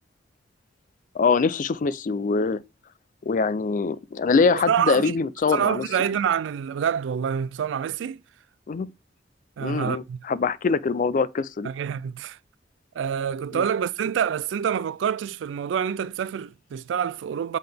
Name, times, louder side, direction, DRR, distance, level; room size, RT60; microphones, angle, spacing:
voice 1, 1.1-2.6 3.3-5.8 8.7-8.9 9.6-11.7 13.5-13.6, left 4 dB, 45° left, 0.4 m, -23 dB
voice 2, 4.7-5.1 5.5-8.2 9.6-10.2 11.6-12.4 13.0-17.6, right 8 dB, 85° right, 0.3 m, -26 dB
7.7 x 3.6 x 3.4 m
head